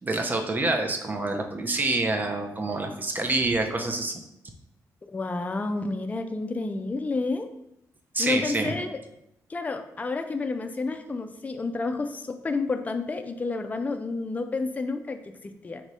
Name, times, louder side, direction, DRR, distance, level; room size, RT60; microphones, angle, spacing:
voice 1, 0.0-4.2 8.1-8.7, right 2 dB, 30° right, 4 dB, 0.6 m, -27 dB
voice 2, 5.1-7.5 8.2-9.0 9.5-15.8, left 3 dB, 25° left, 6 dB, 0.4 m, -30 dB
4.2 x 2.7 x 4.7 m, 0.81 s
cardioid pair, 95°, 6 cm